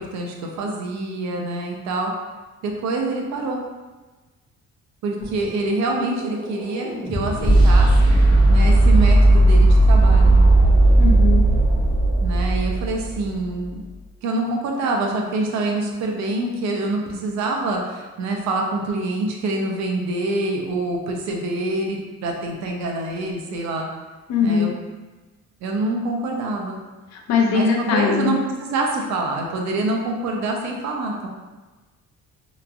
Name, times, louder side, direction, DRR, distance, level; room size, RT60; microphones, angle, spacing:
voice 1, 0.0-2.1 2.6-3.6 5.0-7.9 8.5-10.4 12.2-13.8 14.2-23.9 24.4-24.7 25.6-26.8 27.5-31.3, right 2 dB, 65° right, 1 dB, 0.5 m, -26 dB
sound 1, 5.2-13.3, right 2 dB, 15° left, 0.5 m, -16 dB
voice 2, 11.0-11.5 24.3-24.7 27.1-28.4, left 5 dB, 65° left, 1 dB, 0.5 m, -21 dB
2.9 x 2.5 x 2.3 m, 1.2 s
cardioid pair, 160°, 30 cm